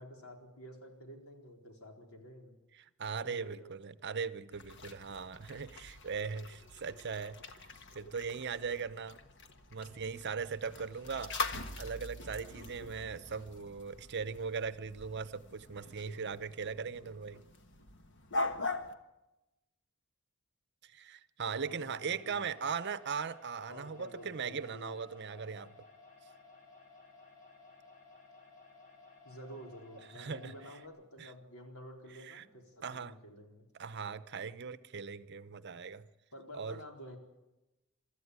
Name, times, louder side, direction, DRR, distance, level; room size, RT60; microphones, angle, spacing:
voice 1, 0.0-2.6 3.2-3.7 21.6-22.5 23.7-25.0 29.2-33.7 36.3-37.2, equal, 80° left, 2 dB, 4.2 m, -50 dB
voice 2, 2.8-9.2 9.7-11.4 11.8-17.4 20.8-25.7 30.1-30.5 31.2-31.3 32.2-32.4 32.8-33.2 33.8-36.1 36.5-36.8, right 5 dB, 50° right, 14 dB, 0.8 m, -39 dB
sound 1, 4.5-18.9, left 2 dB, 55° left, 1.4 m, -43 dB
sound 2, 22.1-30.9, left 3 dB, 40° left, 6.1 m, -57 dB
24.5 x 13.5 x 9.6 m, 1.0 s
head